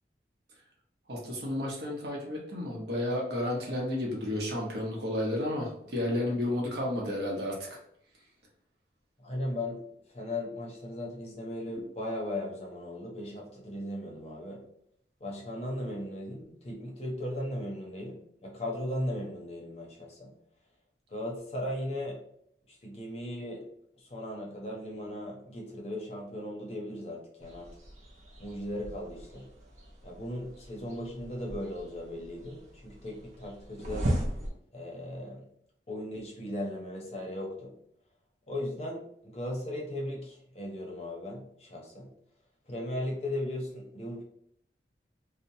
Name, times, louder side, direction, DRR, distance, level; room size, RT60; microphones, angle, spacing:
voice 1, 1.1-7.8, left 1 dB, 70° right, -2 dB, 0.8 m, -32 dB
voice 2, 9.2-9.8 10.1-14.6 15.2-20.3 21.1-22.2 22.7-23.7 24.0-27.7 28.4-29.5 30.0-34.1 34.7-35.5 35.9-37.7 38.5-42.1 42.7-44.2, left 1 dB, 35° left, -1 dB, 0.6 m, -37 dB
sound 1, 27.4-34.5, right 1 dB, 40° right, 0.6 m, -38 dB
2.8 x 2.1 x 2.6 m, 0.69 s
head